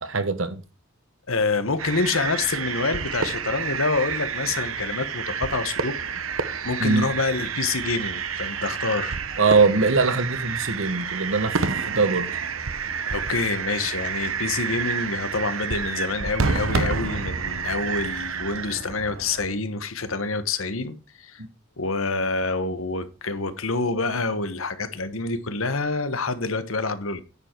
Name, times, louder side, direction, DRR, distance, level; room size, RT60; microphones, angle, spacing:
voice 1, 0.0-0.6 6.8-7.1 9.4-12.3 21.4-21.5, right 4 dB, 70° right, 1.3 m, -22 dB
voice 2, 1.3-6.0 6.4-9.2 13.1-21.4 21.8-27.2, left 3 dB, 90° left, 1.3 m, -27 dB
sound 1, 1.8-19.5, right 5 dB, 85° right, 1.0 m, -29 dB
9.8 x 7.4 x 4.7 m
head